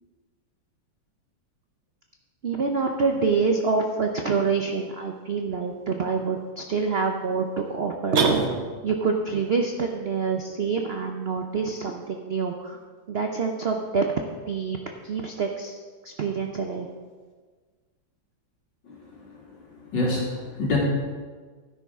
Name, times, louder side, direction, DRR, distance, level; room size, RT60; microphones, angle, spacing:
voice 1, 2.4-8.2 8.8-12.8 13.1-14.1 14.5-14.8 15.0-15.8 16.0-16.9, right 5 dB, 75° right, 3 dB, 0.5 m, -26 dB
sound 1, 8.1-9.0, right 4 dB, 50° right, 0.9 m, -23 dB
voice 2, 19.9-20.8, left 2 dB, 65° left, -3 dB, 3.0 m, -26 dB
12.5 x 10.0 x 3.6 m, 1.5 s
omnidirectional pair, 2.1 m